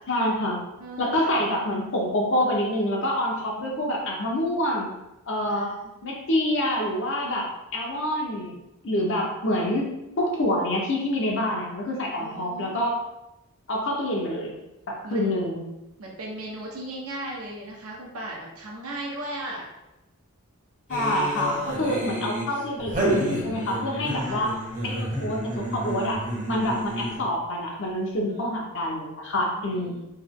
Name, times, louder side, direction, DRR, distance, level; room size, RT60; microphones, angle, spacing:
voice 1, 0.1-0.6 1.0-4.9 5.3-5.7 6.0-8.6 8.8-13.0 13.7-14.5 14.9-15.6 20.9-24.5 24.8-30.0, left 1 dB, 60° left, -1 dB, 0.9 m, -27 dB
voice 2, 0.8-1.4 5.5-6.1 12.1-12.9 15.0-15.4 16.0-19.7 21.4-22.1 24.3-24.5 28.3-28.5 29.4-30.0, right 1 dB, 70° right, -2 dB, 1.0 m, -37 dB
sound 1, 20.9-27.4, right 1 dB, 35° right, 1.0 m, -30 dB
3.3 x 2.9 x 3.6 m, 0.94 s
head